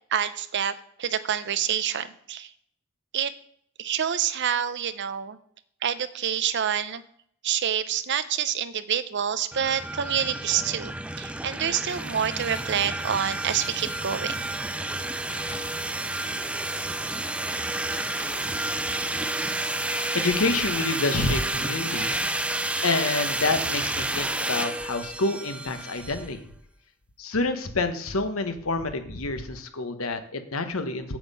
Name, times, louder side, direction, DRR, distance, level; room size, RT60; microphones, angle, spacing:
voice 1, 0.1-2.5 3.1-3.3 3.8-5.4 5.8-7.0 7.4-14.5, right 8 dB, 55° right, 13 dB, 0.6 m, -27 dB
sound 1, 9.5-26.3, right 2 dB, 5° right, 0.4 m, -30 dB
sound 2, 12.6-14.7 15.2-17.1 17.4-17.5 17.9-19.9 20.2-21.2, left 1 dB, 50° left, 3.0 m, -49 dB
voice 2, 20.1-22.2 22.8-26.4 27.2-31.2, left 3 dB, 85° left, 8 dB, 1.1 m, -28 dB
7.7 x 7.5 x 5.4 m, 0.67 s
head